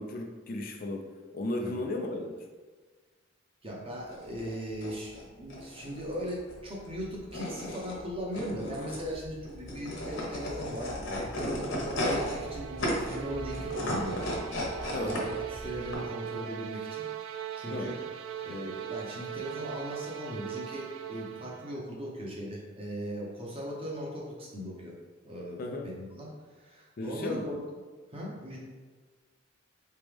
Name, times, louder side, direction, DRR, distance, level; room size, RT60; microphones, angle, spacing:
voice 1, 0.0-2.4 14.9-15.2 17.7-17.9 25.6-25.9 27.0-27.5, left 2 dB, 45° left, 2 dB, 0.4 m, -35 dB
voice 2, 3.6-14.2 15.0-17.0 17.5-18.0 18.4-25.0 25.2-26.3 26.5-27.8 28.1-28.6, equal, 30° right, -3 dB, 0.9 m, -38 dB
sound 1, 4.0-15.9, left 1 dB, 60° left, 1.0 m, -35 dB
sound 2, 11.3-21.8, right 10 dB, 75° right, 0.3 m, -40 dB
4.0 x 3.3 x 3.4 m, 1.4 s
head